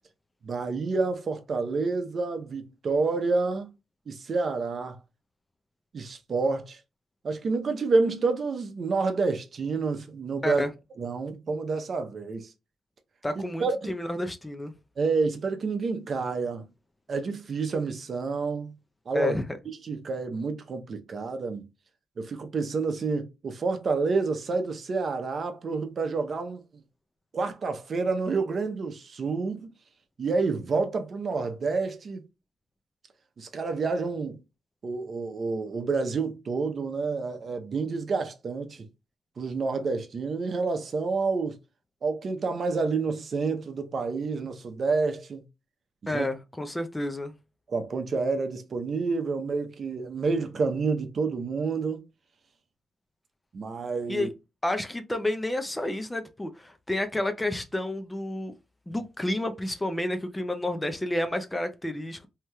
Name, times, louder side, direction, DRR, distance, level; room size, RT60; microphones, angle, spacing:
voice 1, 0.4-3.7 4.1-5.0 5.9-6.8 7.2-10.6 11.0-12.5 13.4-13.9 15.0-16.7 17.1-18.7 19.1-19.4 19.8-21.7 22.2-26.6 27.3-29.7 30.2-32.2 33.4-34.4 34.8-38.9 39.4-41.5 42.0-45.4 46.0-46.3 47.7-52.0 53.5-54.3, right 4 dB, 50° right, 0.7 m, -28 dB
voice 2, 13.2-14.7 19.1-19.6 46.1-47.3 54.1-54.3 54.6-58.5 58.9-62.3, left 1 dB, 15° left, 0.5 m, -30 dB
3.2 x 2.8 x 2.2 m
cardioid pair, 85°, 0 cm